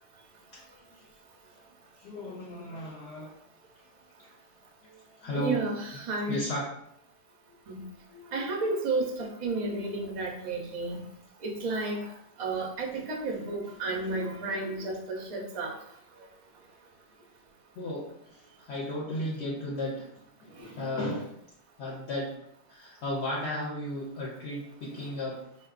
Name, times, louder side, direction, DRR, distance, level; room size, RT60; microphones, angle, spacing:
voice 1, 2.0-3.3 4.8-5.6 6.3-6.7 12.5-12.6 12.9-13.0 17.8-20.1 20.4-21.3 21.8-22.3 22.7-25.4, left 1 dB, 65° left, -3 dB, 0.8 m, -35 dB
voice 2, 5.4-6.4 7.7-7.8 8.3-11.0 11.4-12.1 12.4-15.8 20.6-20.7, right 3 dB, 45° right, 0 dB, 0.4 m, -32 dB
3.8 x 2.2 x 2.4 m, 0.74 s
omnidirectional pair, 1.3 m